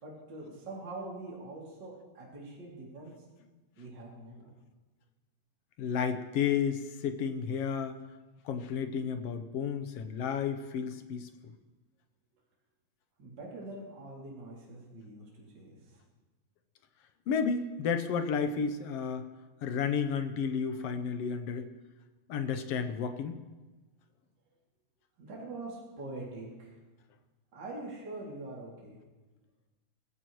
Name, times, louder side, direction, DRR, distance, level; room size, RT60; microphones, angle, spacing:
voice 1, 0.0-3.1 3.8-4.5 13.2-16.0 25.2-26.7 27.5-29.0, right 2 dB, 35° right, -5 dB, 3.2 m, -44 dB
voice 2, 5.8-8.0 8.4-11.3 17.3-19.3 19.6-21.7 22.3-23.4, left 6 dB, 65° left, 8 dB, 1.7 m, -32 dB
25.0 x 15.0 x 3.1 m, 1.2 s
omnidirectional pair, 3.4 m